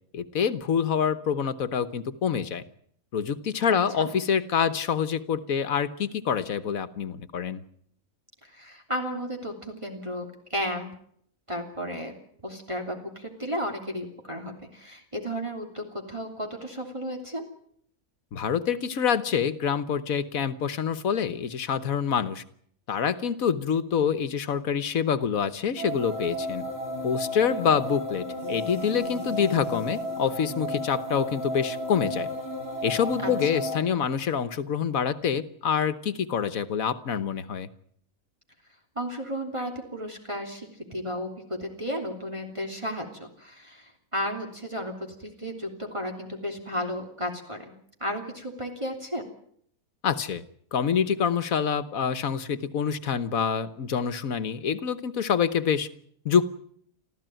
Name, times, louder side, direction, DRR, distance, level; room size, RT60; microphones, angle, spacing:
voice 1, 0.1-2.6 3.1-7.6 18.3-22.4 22.9-26.6 27.0-32.3 32.8-37.7 50.0-50.4 50.7-55.9 56.2-56.5, left 7 dB, 80° left, 13 dB, 1.6 m, -26 dB
voice 2, 3.7-4.1 8.4-10.9 11.5-12.1 12.4-17.4 27.4-27.7 33.2-33.6 38.9-47.7 48.0-49.2, equal, 20° right, 1 dB, 3.2 m, -34 dB
sound 1, 25.8-33.8, left 1 dB, 45° right, 4.7 m, -33 dB
26.0 x 15.0 x 9.1 m, 0.67 s
omnidirectional pair, 1.4 m